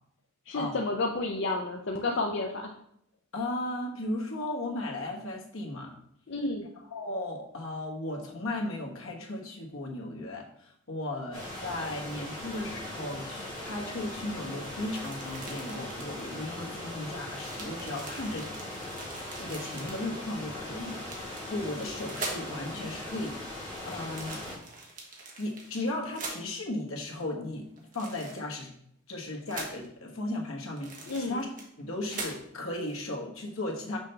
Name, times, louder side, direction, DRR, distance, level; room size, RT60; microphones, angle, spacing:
voice 1, 0.5-2.7 6.3-6.7 31.1-31.4, left 2 dB, 55° left, 1 dB, 0.5 m, -31 dB
voice 2, 3.3-5.9 6.9-18.5 19.4-23.4 23.9-24.4 25.4-27.7 27.9-28.7 29.1-31.5 31.8-34.0, left 1 dB, 75° left, 0 dB, 1.3 m, -36 dB
sound 1, 11.3-24.6, left 1 dB, 25° left, 2.6 m, -40 dB
sound 2, 14.9-16.2 16.9-17.0 17.3-20.1 20.8-22.6 23.7-26.4 27.8-28.6 29.5-29.9 30.8-31.8 32.1-32.4 32.7-33.0, right 3 dB, 40° right, 1.2 m, -43 dB
6.1 x 5.5 x 3.3 m, 0.71 s
head